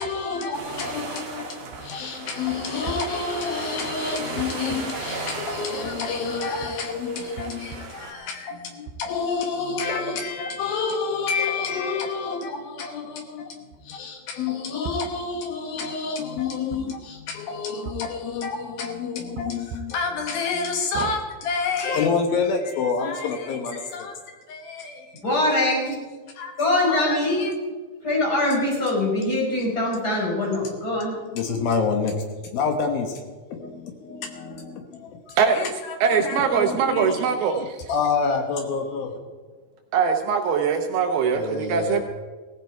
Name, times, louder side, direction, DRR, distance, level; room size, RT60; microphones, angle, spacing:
voice 1, 0.0-25.1 26.4-26.6 26.9-27.5 31.3-33.2 33.6-33.7 34.0-37.3 37.6-39.2 41.4-42.0, left 5 dB, 65° left, 2.6 m, -28 dB
sound 1, 0.5-8.1, right 4 dB, 50° right, 2.2 m, -36 dB
voice 2, 25.1-26.0 26.6-27.4 28.0-31.2, left 2 dB, 20° left, 5.4 m, -23 dB
voice 3, 36.0-37.9 39.9-42.0, right 6 dB, 75° right, 2.4 m, -22 dB
17.0 x 15.5 x 4.6 m
omnidirectional pair, 5.3 m